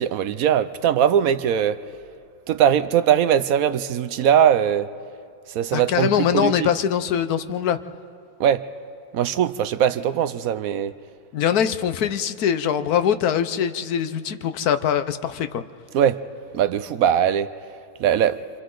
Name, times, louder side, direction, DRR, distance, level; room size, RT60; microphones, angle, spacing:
voice 1, 0.0-1.8 2.5-4.9 5.5-6.7 8.4-8.6 9.1-10.9 15.9-16.2 16.5-17.5 18.0-18.4, right 9 dB, 70° right, 1.1 m, -20 dB
voice 2, 5.7-7.8 11.3-15.6, left 8 dB, 80° left, 1.3 m, -22 dB
29.5 x 25.5 x 3.9 m
omnidirectional pair, 1.6 m